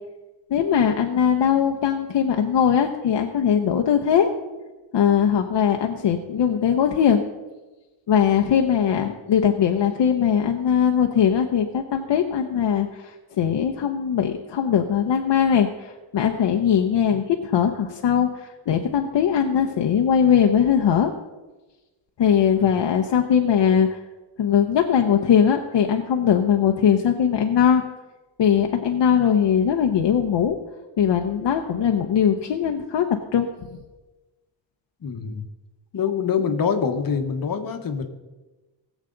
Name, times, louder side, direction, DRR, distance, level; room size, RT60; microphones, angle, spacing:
voice 1, 0.5-4.3 4.9-7.2 8.1-21.1 22.2-24.0 24.4-27.8 28.4-30.6 31.0-33.5, left 8 dB, 60° left, 3 dB, 0.9 m, -20 dB
voice 2, 35.0-35.5 35.9-38.0, left 6 dB, 45° left, 6 dB, 1.2 m, -25 dB
20.5 x 7.3 x 3.9 m, 1.2 s
wide cardioid pair, 155°, 47 cm